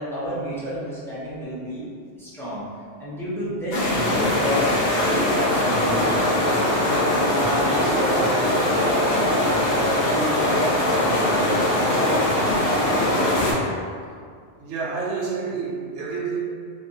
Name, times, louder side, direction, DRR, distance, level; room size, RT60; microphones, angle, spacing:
voice 1, 0.0-1.9 2.2-6.5 7.1-12.7, equal, 5° left, -11 dB, 0.4 m, -31 dB
sound 1, 3.7-13.5, left 1 dB, 60° left, 0.8 m, -21 dB
voice 2, 14.6-16.4, right 5 dB, 75° right, -3 dB, 0.8 m, -28 dB
2.6 x 2.2 x 2.6 m, 2.1 s
omnidirectional pair, 1.2 m